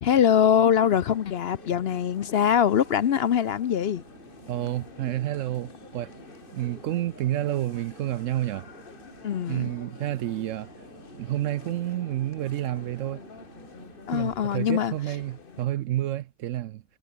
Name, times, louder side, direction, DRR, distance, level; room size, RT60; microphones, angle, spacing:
voice 1, 0.0-4.0 9.2-9.7 14.1-14.9, left 9 dB, 60° left, 0.6 m, -23 dB
sound 1, 0.8-15.7, left 5 dB, 35° left, 1.5 m, -48 dB
Chatter / Fixed-wing aircraft airplane, 0.9-14.4, right 5 dB, 50° right, 2.3 m, -52 dB
voice 2, 4.5-6.1 6.5-8.7 9.5-10.7 11.2-13.2 14.1-16.8, right 13 dB, 70° right, 0.7 m, -29 dB
omnidirectional pair, 1.8 m